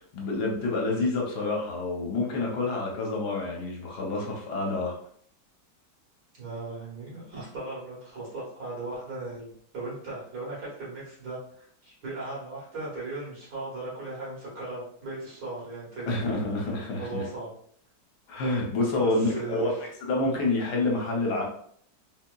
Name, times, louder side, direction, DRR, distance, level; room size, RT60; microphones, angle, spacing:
voice 1, 0.1-4.9 16.1-17.2 18.3-19.7 20.0-21.4, left 2 dB, 70° left, -1 dB, 1.4 m, -28 dB
voice 2, 6.4-16.2 17.0-17.5 19.0-19.8 20.2-20.4, right 2 dB, 65° right, -7 dB, 2.1 m, -37 dB
4.1 x 2.8 x 2.3 m, 0.63 s
omnidirectional pair, 1.9 m